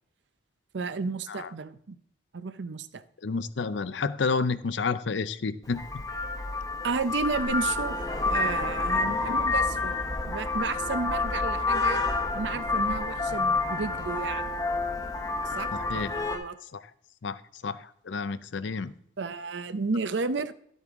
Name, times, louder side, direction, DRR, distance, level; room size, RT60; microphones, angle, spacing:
voice 1, 0.7-2.0 2.3-3.0 6.8-8.0 8.2-9.9 10.2-12.0 12.3-14.6 15.4-16.6 19.2-20.5, right 4 dB, 75° right, 13 dB, 0.6 m, -32 dB
voice 2, 3.2-5.8 9.1-9.3 15.9-16.1 17.2-17.4 17.6-17.8 18.1-18.9, left 4 dB, 80° left, 15 dB, 0.5 m, -29 dB
Vehicle horn car horn honking, 5.7-16.4, left 3 dB, 20° left, 1.0 m, -29 dB
11.5 x 8.1 x 3.6 m, 0.68 s
head